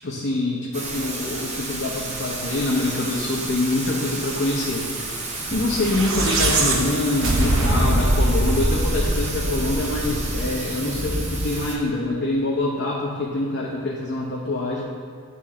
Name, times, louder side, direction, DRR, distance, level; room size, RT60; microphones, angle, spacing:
voice 1, 0.0-14.8, left 2 dB, 55° left, -4 dB, 0.7 m, -25 dB
Thunder / Rain, 0.7-11.8, right 2 dB, 30° right, 0.7 m, -30 dB
sound 1, 5.7-10.1, right 1 dB, 60° right, 0.8 m, -22 dB
9.3 x 3.3 x 3.7 m, 2.1 s
head